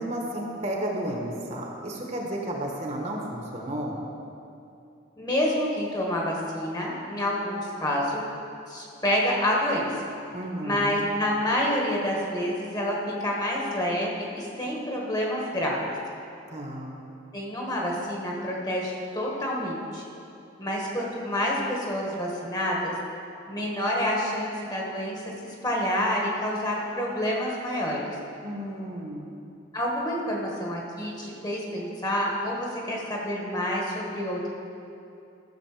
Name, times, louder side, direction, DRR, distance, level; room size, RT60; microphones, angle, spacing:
voice 1, 0.0-4.0 10.3-11.0 16.5-17.0 28.4-29.3, right 1 dB, 35° right, -1 dB, 1.3 m, -32 dB
voice 2, 5.2-8.2 8.7-9.9 10.6-15.8 17.3-20.0 20.6-22.9 23.5-28.1 29.7-34.5, left 1 dB, 20° left, -2 dB, 1.4 m, -28 dB
13.5 x 6.7 x 4.9 m, 2.7 s
head